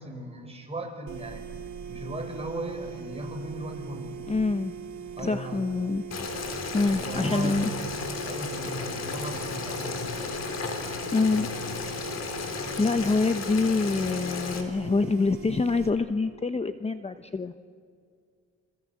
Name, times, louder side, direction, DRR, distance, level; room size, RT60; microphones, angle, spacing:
voice 1, 0.0-1.5 1.9-4.1 5.2-5.6 6.7-7.8 8.2-10.3, right 1 dB, 20° right, 2 dB, 6.4 m, -37 dB
sound 1, 1.1-15.9, right 6 dB, 70° right, 2.9 m, -41 dB
voice 2, 4.3-4.7 5.2-6.0 6.7-7.7 8.7-8.8 11.1-11.5 12.2-17.6, left 3 dB, 20° left, 9 dB, 1.0 m, -26 dB
Boiling, 6.1-14.6, left 4 dB, 55° left, 4.1 m, -34 dB
28.5 x 26.0 x 7.6 m, 2.1 s
cardioid pair, 90°, 30 cm